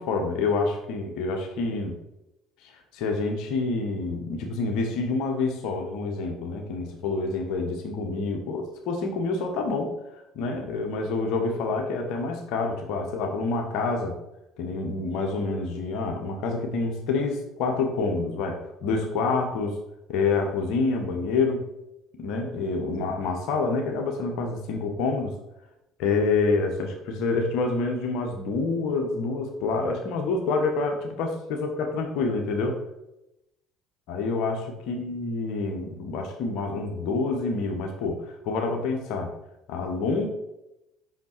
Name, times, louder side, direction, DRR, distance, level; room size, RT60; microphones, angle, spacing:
voice 1, 0.0-2.0 2.6-9.9 10.3-14.2 14.6-19.8 20.1-21.6 22.2-25.3 26.0-32.8 34.1-39.3 39.7-40.3, left 3 dB, 60° left, 4 dB, 1.4 m, -27 dB
8.1 x 6.1 x 4.5 m, 0.89 s
figure-of-eight pair, 55°, 0 cm